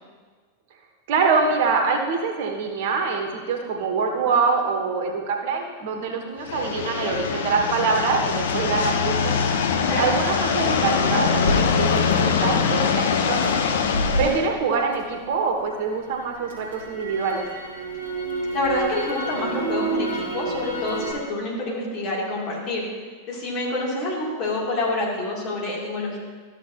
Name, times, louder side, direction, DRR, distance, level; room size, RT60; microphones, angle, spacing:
voice 1, 1.1-9.3 10.0-13.6 14.2-17.5, right 5 dB, 50° right, 3 dB, 1.1 m, -24 dB
sound 1, 6.4-14.4, left 6 dB, 60° left, 0.8 m, -23 dB
voice 2, 9.7-10.0 14.1-14.3 18.5-22.9 23.3-26.2, left 2 dB, 40° left, -4 dB, 2.8 m, -27 dB
Crackle, 11.4-15.6 16.0-21.1, right 1 dB, 80° left, 2.2 m, -30 dB
13.0 x 7.0 x 2.9 m, 1.5 s
figure-of-eight pair, 90°, 0 cm